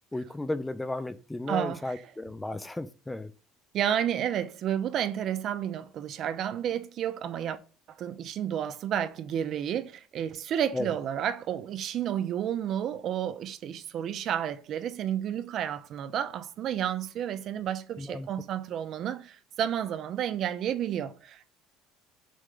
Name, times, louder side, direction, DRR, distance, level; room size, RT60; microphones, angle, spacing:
voice 1, 0.1-3.3 10.7-10.9 18.0-18.3, left 2 dB, 10° left, 0.3 m, -34 dB
voice 2, 1.5-2.0 3.7-7.6 7.9-21.5, right 10 dB, 50° right, 0.5 m, -31 dB
6.2 x 2.2 x 3.7 m
cardioid pair, 125°, 0 cm